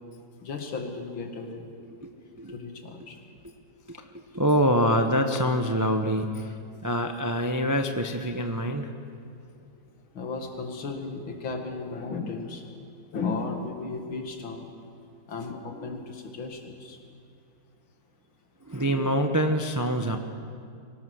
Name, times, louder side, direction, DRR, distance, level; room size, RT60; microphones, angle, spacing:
voice 1, 0.4-1.7 2.5-3.2 10.1-12.7 13.1-14.7 15.3-17.0, left 4 dB, 80° left, 3 dB, 2.7 m, -35 dB
voice 2, 4.3-6.3 6.8-8.9 18.7-20.2, equal, 25° right, 5 dB, 0.4 m, -25 dB
24.0 x 18.0 x 6.4 m, 2.4 s
omnidirectional pair, 2.2 m